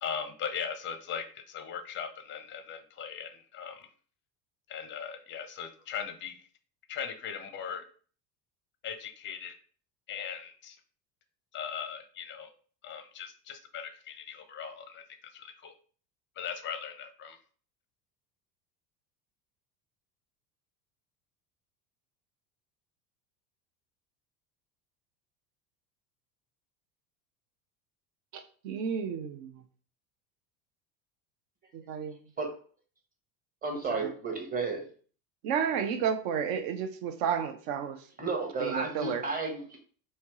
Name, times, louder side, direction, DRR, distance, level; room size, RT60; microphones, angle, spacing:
voice 1, 0.0-3.9 4.7-6.4 6.9-7.8 8.8-9.5 10.1-10.8 11.5-12.5 12.8-15.0 15.3-15.7 16.4-17.4, left 7 dB, 25° left, 8 dB, 0.5 m, -39 dB
voice 2, 28.3-29.5 31.7-32.2 33.9-34.1 35.4-38.0 38.6-39.2, right 7 dB, 50° right, 9 dB, 0.7 m, -32 dB
voice 3, 33.6-34.8 38.2-39.8, right 3 dB, 15° right, 2 dB, 1.0 m, -32 dB
3.3 x 2.7 x 3.0 m, 0.43 s
figure-of-eight pair, 70°, 50 cm